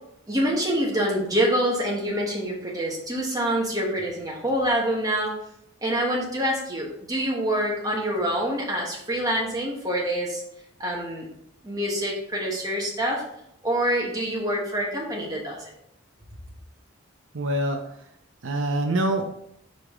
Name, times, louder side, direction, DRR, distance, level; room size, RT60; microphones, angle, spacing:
voice 1, 0.3-5.4 5.8-10.4 10.8-11.3 11.6-13.2 13.6-15.7, right 1 dB, 20° right, -3 dB, 1.3 m, -26 dB
voice 2, 17.3-17.8 18.4-19.2, right 1 dB, 65° right, 4 dB, 0.6 m, -24 dB
5.1 x 4.9 x 3.7 m, 0.76 s
head